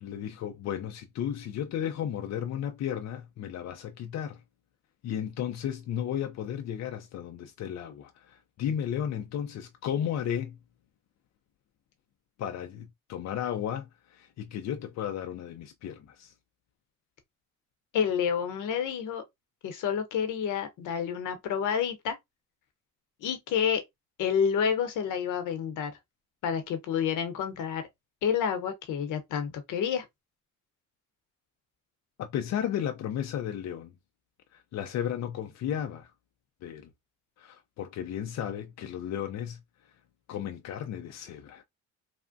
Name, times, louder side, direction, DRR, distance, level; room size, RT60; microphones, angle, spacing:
voice 1, 0.0-4.4 5.0-10.6 12.4-16.3 32.2-33.9 34.5-36.1 36.6-36.9 37.4-39.6 40.3-41.6, left 9 dB, 60° left, 0.5 m, -34 dB
voice 2, 17.9-19.2 19.6-22.2 23.2-23.8 24.2-25.9 26.4-27.8 28.2-30.0, left 7 dB, 85° left, 0.8 m, -29 dB
3.3 x 2.1 x 2.5 m
cardioid pair, 90°, 30 cm